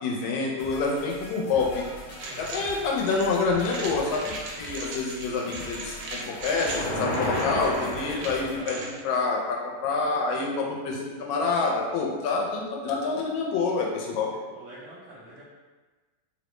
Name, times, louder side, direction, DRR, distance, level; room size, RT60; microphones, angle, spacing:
voice 1, 0.0-1.8 2.4-14.3, left 4 dB, 90° left, -1 dB, 1.4 m, -27 dB
sound 1, 0.6-8.6, equal, 70° left, 1.3 m, -43 dB
sound 2, 2.1-9.0, right 2 dB, 85° right, 1.4 m, -39 dB
voice 2, 2.2-2.5 7.9-8.9 14.5-15.4, right 1 dB, 70° right, -9 dB, 0.8 m, -45 dB
sound 3, 6.5-8.8, left 1 dB, 55° left, 1.1 m, -30 dB
3.5 x 2.1 x 3.0 m, 1.3 s
omnidirectional pair, 2.2 m